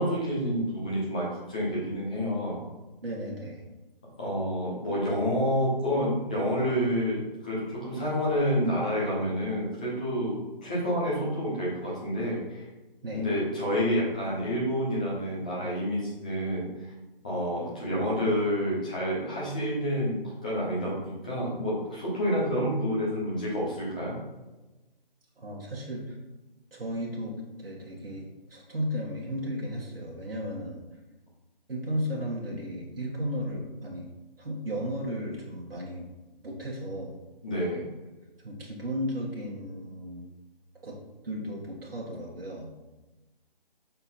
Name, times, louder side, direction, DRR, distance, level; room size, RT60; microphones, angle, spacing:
voice 1, 0.0-2.6 4.2-12.6 13.1-16.7 17.2-24.2 37.4-37.9, equal, 10° left, -7 dB, 0.7 m, -29 dB
voice 2, 3.0-3.6 13.0-13.3 25.4-26.2 26.7-30.8 31.7-34.1 34.4-36.1 36.4-37.2 38.4-40.3 40.8-41.0 41.2-42.7, equal, 70° right, -4 dB, 1.7 m, -34 dB
5.7 x 4.3 x 4.2 m, 1.1 s
figure-of-eight pair, 165°, 29 cm